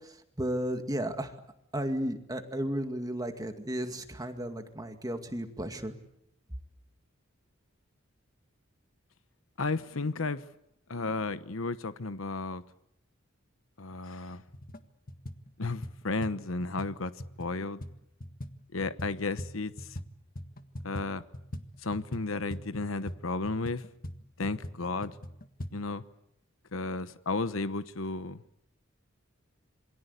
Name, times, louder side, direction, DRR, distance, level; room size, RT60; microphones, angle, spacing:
voice 1, 0.0-1.4 1.7-5.9, right 1 dB, 20° right, 2.2 m, -34 dB
voice 2, 9.6-10.4 10.9-12.6 13.8-14.4 15.6-17.1 17.4-17.8 18.7-20.0 20.8-21.2 21.8-23.8 24.4-25.1 25.7-26.0 26.7-28.4, left 3 dB, 80° left, 1.0 m, -33 dB
sound 1, 14.5-14.8 15.1-20.1 20.3-25.7, left 1 dB, 45° left, 1.6 m, -42 dB
27.0 x 23.0 x 8.2 m
head